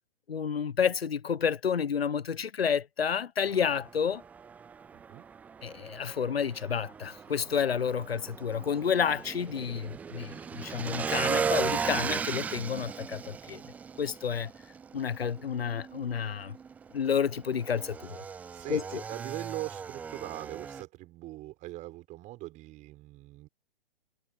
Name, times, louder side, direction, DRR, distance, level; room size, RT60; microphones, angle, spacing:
voice 1, 0.3-4.2 5.6-13.6 14.0-14.5 14.9-16.6 16.9-18.2 18.7-19.0, left 7 dB, 70° left, 1.2 m, -30 dB
Motorcycle / Engine, 3.4-20.8, right 6 dB, 5° right, 0.5 m, -37 dB
voice 2, 4.9-5.3 18.5-23.5, right 17 dB, 25° right, 6.8 m, -41 dB
figure-of-eight pair, 125°, 31 cm